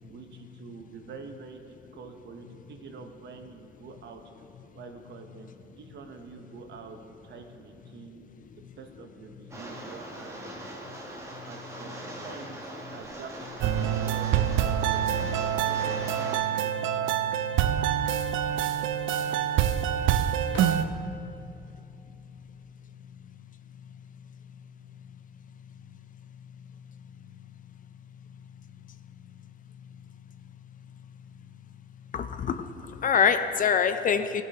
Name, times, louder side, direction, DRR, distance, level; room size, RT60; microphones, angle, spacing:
voice 1, 0.0-4.2 4.7-10.6 11.4-13.3 13.6-15.2, right 4 dB, 65° right, 5 dB, 0.8 m, -46 dB
Rain, 9.5-16.4, right 1 dB, 15° right, 1.3 m, -41 dB
sound 1, 13.1-13.9 14.4-14.5 14.8-17.5 17.8-18.6 19.7-21.5 21.9-22.6, left 3 dB, 70° left, 1.2 m, -47 dB
sound 2, 13.6-20.8, right 10 dB, 80° right, 0.4 m, -26 dB
voice 2, 32.1-34.4, left 7 dB, 45° left, 10 dB, 0.4 m, -25 dB
14.5 x 5.5 x 2.8 m, 2.6 s
cardioid pair, 90°, 20 cm